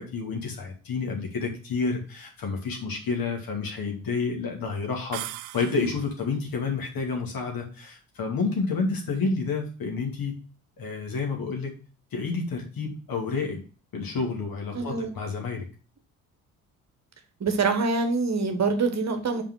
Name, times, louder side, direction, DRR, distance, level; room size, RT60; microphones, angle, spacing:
voice 1, 0.0-5.2 5.5-10.4 10.8-11.7 12.1-13.6 13.9-15.7, left 4 dB, 50° left, 2 dB, 2.6 m, -29 dB
sound 1, 5.1-6.2, right 16 dB, 65° right, 0.6 m, -38 dB
voice 2, 14.7-15.1 17.4-19.4, right 4 dB, 35° right, 7 dB, 1.4 m, -25 dB
5.6 x 5.1 x 6.3 m, 0.37 s
figure-of-eight pair, 45°, 44 cm